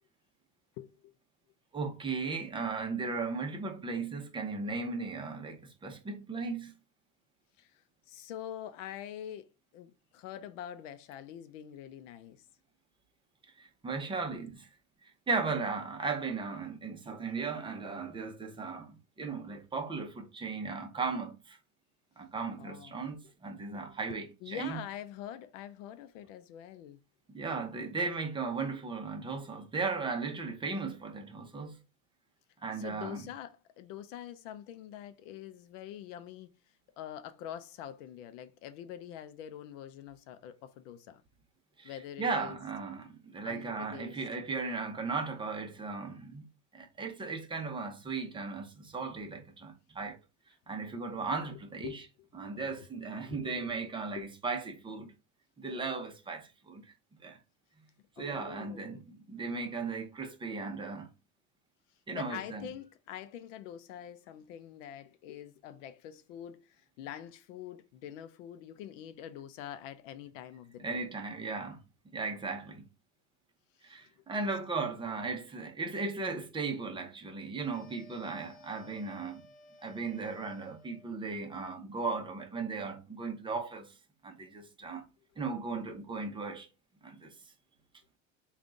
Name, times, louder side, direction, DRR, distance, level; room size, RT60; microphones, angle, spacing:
voice 1, 1.7-6.7 13.6-14.7 15.3-21.6 22.2-24.8 27.3-31.8 32.6-33.2 41.8-46.4 46.7-50.2 50.7-52.0 52.3-55.1 55.6-56.8 57.2-57.4 58.2-61.1 62.1-62.7 70.8-71.8 72.1-72.8 73.8-79.4 79.8-84.0 84.2-85.0 85.4-86.7 87.0-87.3, right 4 dB, 15° right, 0.7 m, -36 dB
voice 2, 8.1-9.5 9.7-12.4 22.6-23.0 24.1-27.0 32.7-36.5 37.0-41.2 41.8-42.6 43.4-44.2 51.5-52.9 53.3-54.3 58.2-59.0 62.1-71.0 73.8-74.0, left 10 dB, 85° left, 0.6 m, -45 dB
sound 1, 77.7-81.2, left 3 dB, 25° left, 0.5 m, -57 dB
3.7 x 2.4 x 3.7 m
supercardioid pair, 130°, 36 cm